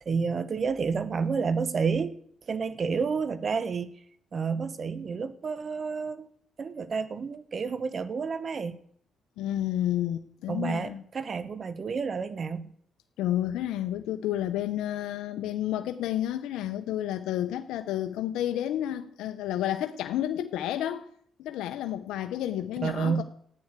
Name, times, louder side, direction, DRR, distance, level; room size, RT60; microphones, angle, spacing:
voice 1, 0.0-2.2 2.5-3.9 4.3-6.3 6.6-8.8 10.5-12.7 22.8-23.2, right 5 dB, 45° right, 1.3 m, -30 dB
voice 2, 9.4-11.0 13.2-21.1 21.4-23.2, left 12 dB, 90° left, 0.8 m, -30 dB
14.0 x 9.6 x 8.2 m
cardioid pair, 90°, 0 cm